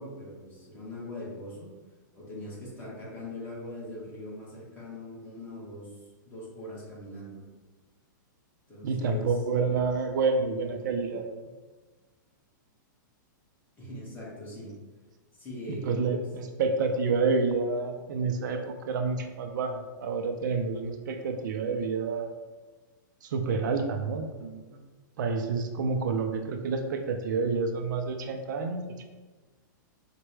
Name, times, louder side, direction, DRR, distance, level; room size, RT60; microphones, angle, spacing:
voice 1, 0.0-1.7 2.1-7.4 8.7-9.4 13.8-14.7 15.3-16.3, left 1 dB, 20° left, -6 dB, 1.2 m, -41 dB
voice 2, 8.8-11.3 15.8-22.3 23.2-24.8 25.2-29.0, right 4 dB, 65° right, 5 dB, 0.4 m, -29 dB
4.3 x 2.2 x 3.2 m, 1.3 s
hypercardioid pair, 145°, 11 cm